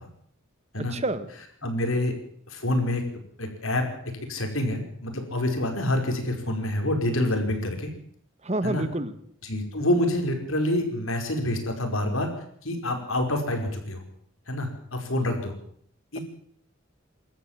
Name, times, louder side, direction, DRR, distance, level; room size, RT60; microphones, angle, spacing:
voice 1, 0.8-1.3 1.6-1.7 8.4-9.2, right 2 dB, 30° right, 13 dB, 1.4 m, -29 dB
voice 2, 1.6-2.1 2.5-3.0 3.4-3.8 4.3-7.9 8.6-8.8 9.4-12.3 12.6-14.0 14.5-15.5 16.1-16.2, left 1 dB, 85° left, 4 dB, 5.3 m, -27 dB
26.5 x 13.5 x 7.5 m, 0.63 s
head